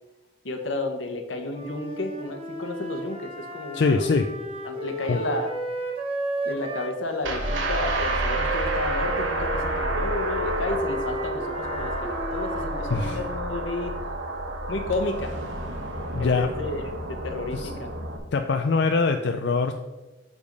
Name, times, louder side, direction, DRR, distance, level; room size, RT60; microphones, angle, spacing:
voice 1, 0.4-4.0 4.6-5.5 6.4-13.9 14.7-15.3 16.2-17.9, left 2 dB, 85° left, 5 dB, 1.1 m, -32 dB
Wind instrument woodwind instrument, 1.5-6.9 7.4-13.3, right 1 dB, 30° right, 1.2 m, -33 dB
voice 2, 3.7-4.3 5.1-5.2 12.9-13.2 16.1-16.5 17.5-17.7 18.3-19.7, left 4 dB, 65° left, 5 dB, 0.4 m, -23 dB
sound 1, 7.2-18.2, right 1 dB, 85° right, 1.1 m, -30 dB
6.7 x 5.1 x 5.3 m, 1.1 s
head